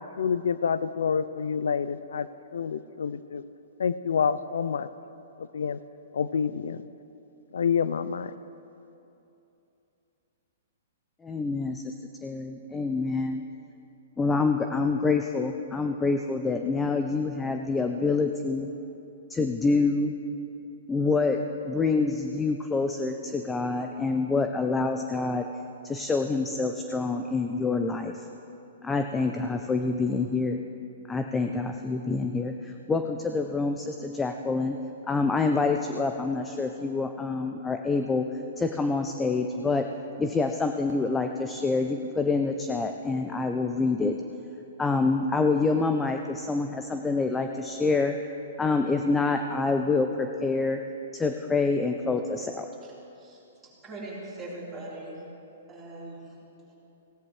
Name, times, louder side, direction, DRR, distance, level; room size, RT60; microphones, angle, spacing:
voice 1, 0.0-2.3 2.5-3.4 3.8-4.9 5.4-5.8 6.1-6.8 7.5-8.3, left 6 dB, 90° left, 15 dB, 0.4 m, -28 dB
voice 2, 11.2-11.9 12.2-13.4 14.2-18.7 19.3-20.1 20.9-21.4 21.6-25.5 25.8-28.3 28.8-30.6 31.1-34.8 35.1-38.2 38.6-39.8 40.2-44.2 44.8-48.1 48.6-50.8 51.1-52.7, left 3 dB, 10° left, 5 dB, 0.4 m, -26 dB
voice 3, 53.2-55.2 55.7-56.8, right 2 dB, 10° right, -9 dB, 3.9 m, -41 dB
17.5 x 17.0 x 3.2 m, 2.9 s
hypercardioid pair, 160°, 0 cm